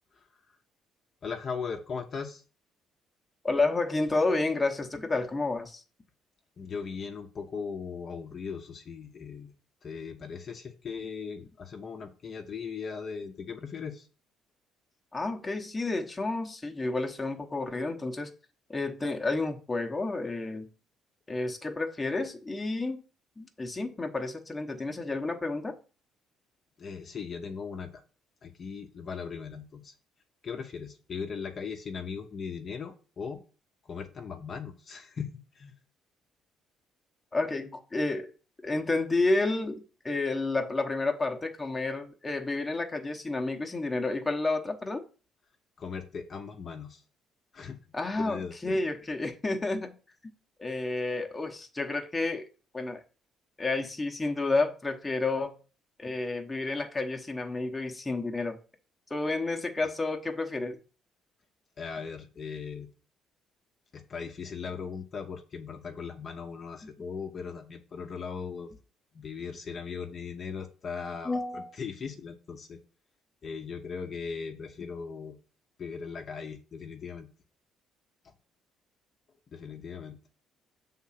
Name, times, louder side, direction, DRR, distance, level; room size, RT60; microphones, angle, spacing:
voice 1, 1.2-2.4 6.6-9.5 9.8-14.1 26.8-28.0 28.4-29.9 30.4-33.4 33.8-35.7 45.8-47.0 47.5-47.8 48.2-48.8 61.8-62.9 63.9-68.8 69.1-72.8 73.4-75.4 75.8-77.3 78.2-78.3 79.5-80.2, left 6 dB, 35° left, 3 dB, 0.8 m, -38 dB
voice 2, 3.4-5.8 15.1-18.3 18.7-20.7 21.3-23.0 23.4-25.8 37.3-38.3 38.6-45.0 47.9-49.9 50.6-52.5 52.7-53.0 53.6-55.6 56.0-58.6 59.1-60.8 71.2-71.7, left 3 dB, 15° left, 3 dB, 0.9 m, -30 dB
7.2 x 3.7 x 5.7 m, 0.36 s
cardioid pair, 150°, 0 cm